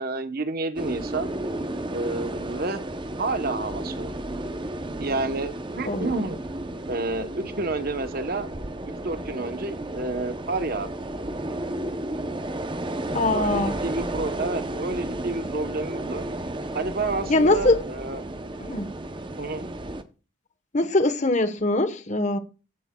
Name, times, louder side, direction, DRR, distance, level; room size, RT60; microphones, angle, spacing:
voice 1, 0.0-1.3 1.9-2.8 3.2-4.1 5.0-6.4 6.9-8.5 9.0-11.1 13.3-16.3 16.7-18.2 19.4-19.7, right 3 dB, 45° right, 1.0 m, -30 dB
sound 1, 0.8-20.0, right 1 dB, 25° right, 0.7 m, -33 dB
voice 2, 13.1-13.7 17.3-17.8 18.6-18.9 20.7-22.4, left 2 dB, 35° left, 1.1 m, -22 dB
15.5 x 7.5 x 2.3 m
head